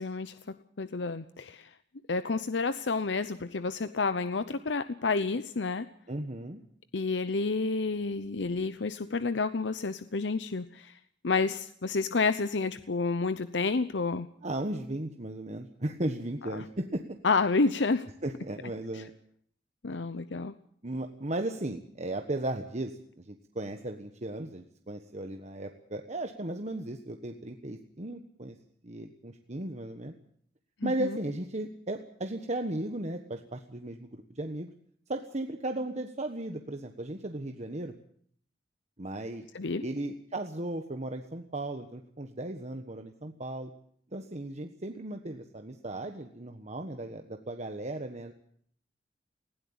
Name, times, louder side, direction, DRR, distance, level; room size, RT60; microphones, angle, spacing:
voice 1, 0.0-1.7 2.1-5.9 6.9-11.0 11.2-14.3 16.5-16.6 17.2-18.1 18.9-19.0 19.8-20.5 30.8-31.2 39.5-39.8, left 4 dB, 75° left, 12 dB, 0.8 m, -30 dB
voice 2, 6.1-6.6 14.4-17.0 18.2-19.1 20.0-20.1 20.8-28.6 28.8-30.1 30.8-34.7 35.1-37.9 39.0-39.4 39.8-43.7 44.1-48.3, right 1 dB, 40° right, 5 dB, 1.4 m, -36 dB
20.0 x 16.5 x 8.9 m, 0.63 s
head